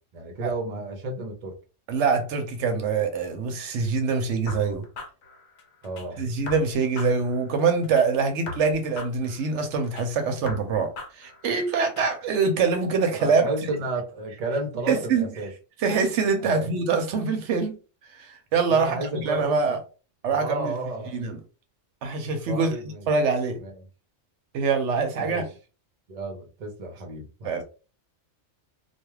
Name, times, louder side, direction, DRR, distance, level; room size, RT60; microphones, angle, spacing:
voice 1, 0.0-1.6 5.8-6.3 13.2-15.5 16.4-16.7 18.7-19.8 20.3-21.2 22.5-23.0 23.6-23.7 25.2-25.4 26.1-27.6, right 2 dB, 40° right, 0.7 m, -32 dB
voice 2, 1.9-4.9 6.2-13.5 14.9-15.3 15.8-17.8 18.1-19.8 20.2-20.7 21.1-21.4 22.0-22.7 23.1-23.6 24.5-25.4 27.4-27.6, right 5 dB, 75° right, 0.9 m, -24 dB
sound 1, 4.5-6.1 6.5-8.1 8.5-10.1 10.5-12.1, left 3 dB, 65° left, 0.9 m, -39 dB
2.3 x 2.3 x 3.1 m
omnidirectional pair, 1.2 m